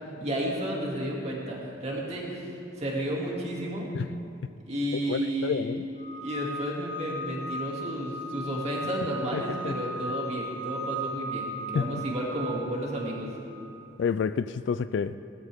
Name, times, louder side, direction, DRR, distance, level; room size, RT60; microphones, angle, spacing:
voice 1, 0.2-3.9 4.7-5.7 6.2-13.3, right 1 dB, 35° right, 2.5 m, -32 dB
voice 2, 5.1-5.8 9.3-9.7 11.7-11.9 14.0-15.2, left 6 dB, 70° left, 0.3 m, -29 dB
sound 1, 6.0-13.7, equal, 55° left, 3.6 m, -37 dB
18.0 x 13.5 x 3.6 m
head